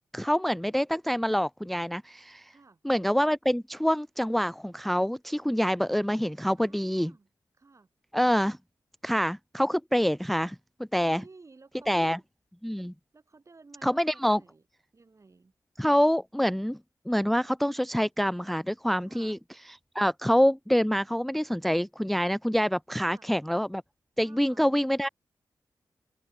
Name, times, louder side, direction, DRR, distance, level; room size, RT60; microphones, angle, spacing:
voice 1, 0.1-2.5 2.8-7.1 8.1-8.6 9.0-10.6 10.9-11.2 11.9-12.2 12.6-12.9 13.8-14.4 15.8-16.8 17.1-19.4 20.0-23.8 24.2-25.1, equal, ahead, 0.3 m, -26 dB
voice 2, 2.5-2.8 6.6-7.3 7.6-7.9 11.0-12.2 13.1-14.6 14.9-15.5 19.0-19.4 23.0-23.3 24.2-24.7, right 3 dB, 45° right, 3.9 m, -55 dB
cardioid pair, 60°, 7 cm